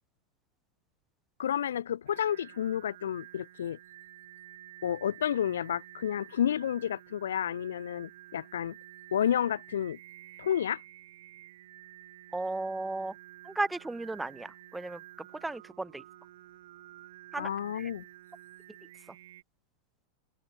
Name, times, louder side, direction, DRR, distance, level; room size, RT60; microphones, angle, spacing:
voice 1, 1.4-3.8 4.8-8.8 9.1-10.0 10.4-10.8 17.4-18.0, left 9 dB, 65° left, 0.3 m, -30 dB
Singing, 2.1-19.4, right 14 dB, 55° right, 2.0 m, -51 dB
voice 2, 12.3-13.1 13.4-16.0 17.3-17.9, right 2 dB, 5° right, 1.0 m, -35 dB
open air
figure-of-eight pair, 90°, 0 cm